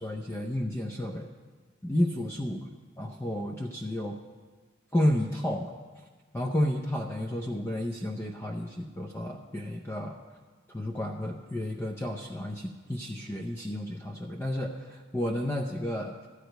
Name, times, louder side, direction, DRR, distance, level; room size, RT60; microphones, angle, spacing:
voice 1, 0.0-1.3 1.8-2.6 3.0-4.2 4.9-5.7 6.3-10.2 10.7-16.1, left 1 dB, 15° left, 1 dB, 0.6 m, -31 dB
13.5 x 4.9 x 9.0 m, 1.4 s
head